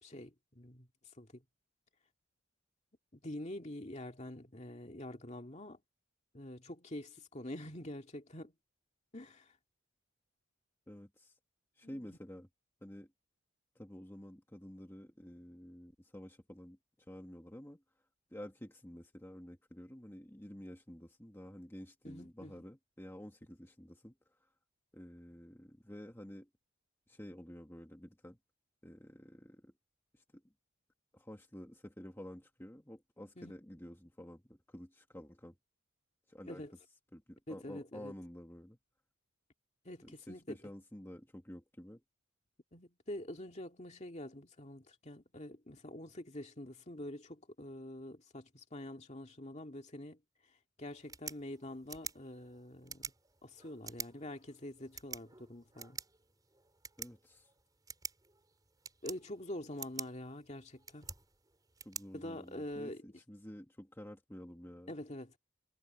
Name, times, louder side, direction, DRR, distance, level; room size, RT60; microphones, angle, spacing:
voice 1, 0.0-0.9 1.2-1.4 3.1-5.8 6.3-8.5 9.1-9.5 11.8-12.2 22.0-22.6 33.4-33.5 36.5-36.7 37.5-38.1 39.8-40.6 42.7-50.2 50.8-53.1 53.4-56.0 59.0-61.1 62.1-63.0 64.9-65.4, left 1 dB, 30° left, 2.3 m, -46 dB
voice 2, 10.9-11.4 11.7-12.5 12.8-13.1 13.7-17.8 18.3-24.5 24.9-26.5 27.1-28.4 28.8-29.7 30.1-30.4 31.1-35.6 36.3-36.6 37.1-38.8 40.0-42.0 57.0-57.5 61.8-64.9, equal, 10° left, 1.6 m, -50 dB
sound 1, 50.9-62.9, right 6 dB, 20° right, 5.1 m, -49 dB
head